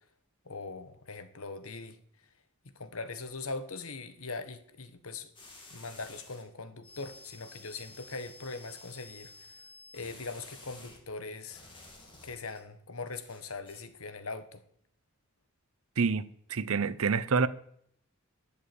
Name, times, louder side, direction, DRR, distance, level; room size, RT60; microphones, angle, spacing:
voice 1, 0.4-2.0 2.7-5.3 5.7-9.6 9.9-11.6 12.2-14.6, left 3 dB, 65° left, 1.4 m, -41 dB
sound 1, 5.3-6.4 6.8-11.0 11.5-12.6 13.1-13.8, left 2 dB, 25° left, 3.2 m, -52 dB
voice 2, 16.0-17.5, right 5 dB, 65° right, 0.7 m, -27 dB
12.5 x 7.5 x 8.7 m
head